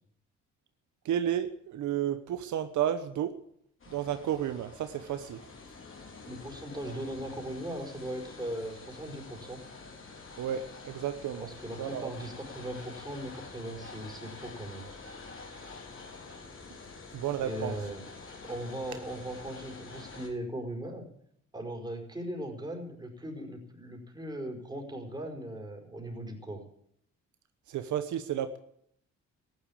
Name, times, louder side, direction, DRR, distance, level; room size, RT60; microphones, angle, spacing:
voice 1, 1.0-3.3 3.9-5.4 10.4-11.5 11.8-12.1 17.1-17.8 27.7-28.6, right 10 dB, 75° right, 10 dB, 1.0 m, -32 dB
sound 1, 3.8-20.3, left 4 dB, 45° left, 4.0 m, -47 dB
voice 2, 6.2-9.6 11.4-14.9 17.4-18.0 18.4-21.1 21.5-26.6, right 1 dB, 15° right, 2 dB, 5.0 m, -39 dB
14.5 x 11.0 x 8.6 m, 0.68 s
cardioid pair, 90°, 30 cm